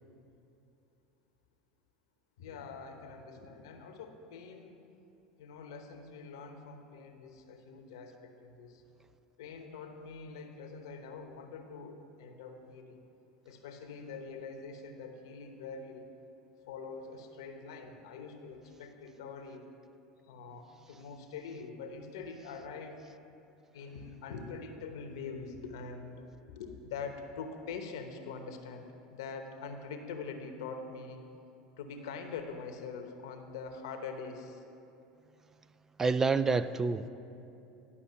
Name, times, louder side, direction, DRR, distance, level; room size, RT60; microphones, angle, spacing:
voice 1, 2.4-4.8 5.4-8.8 9.4-13.0 13.4-16.1 16.7-19.7 20.2-23.0 23.7-26.3 26.5-31.2 31.8-34.6, left 5 dB, 80° left, 5 dB, 1.0 m, -44 dB
voice 2, 36.0-37.1, right 4 dB, 20° right, 13 dB, 0.3 m, -28 dB
11.0 x 5.7 x 6.8 m, 2.8 s
hypercardioid pair, 90°, 2 cm